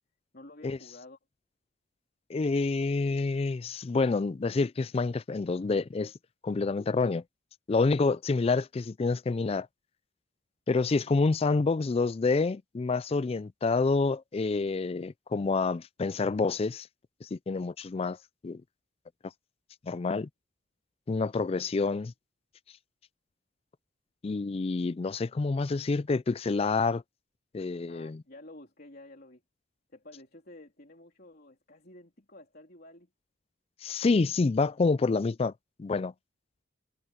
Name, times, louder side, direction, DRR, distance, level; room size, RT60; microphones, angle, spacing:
voice 1, 0.3-1.2 27.6-29.4 29.9-33.1, left 1 dB, 50° left, 3.5 m, -51 dB
voice 2, 2.3-6.1 6.4-7.2 7.7-9.7 10.7-16.9 17.3-18.2 18.4-18.6 19.8-20.3 21.1-22.1 24.2-27.0 27.5-28.2 33.8-35.5 35.8-36.1, left 3 dB, 30° left, 0.3 m, -28 dB
head